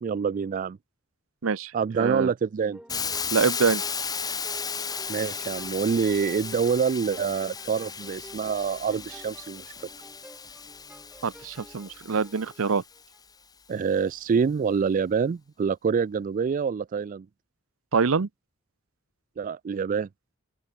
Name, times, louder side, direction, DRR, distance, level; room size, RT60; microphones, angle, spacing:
voice 1, 0.0-0.8 1.7-2.8 5.1-9.6 13.7-17.3 19.4-20.1, right 6 dB, 40° right, 0.3 m, -26 dB
voice 2, 2.0-2.3 3.3-3.8 11.2-12.8 17.9-18.3, right 5 dB, 80° right, 0.7 m, -25 dB
sound 1, 2.7-13.2, equal, 5° right, 2.0 m, -50 dB
Hiss, 2.9-12.8, left 6 dB, 20° left, 1.0 m, -35 dB
open air
head